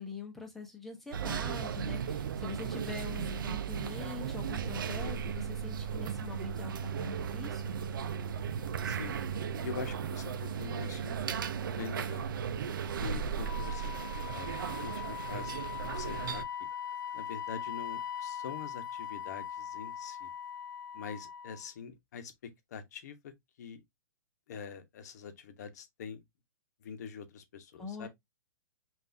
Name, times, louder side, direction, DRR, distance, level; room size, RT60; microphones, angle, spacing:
voice 1, 0.0-7.8 27.8-28.1, left 5 dB, ahead, 0.9 m, -43 dB
sound 1, 1.1-16.4, right 7 dB, 75° right, 0.6 m, -36 dB
voice 2, 8.8-9.2 9.6-11.4 11.8-12.3 12.7-15.6 15.8-16.4 17.1-20.3 20.9-23.3 23.6-23.8 24.5-26.2 26.8-28.1, left 6 dB, 50° left, 1.0 m, -44 dB
Wind instrument woodwind instrument, 13.4-21.7, left 9 dB, 70° left, 0.5 m, -40 dB
5.6 x 2.6 x 2.6 m
hypercardioid pair, 165°, 11 cm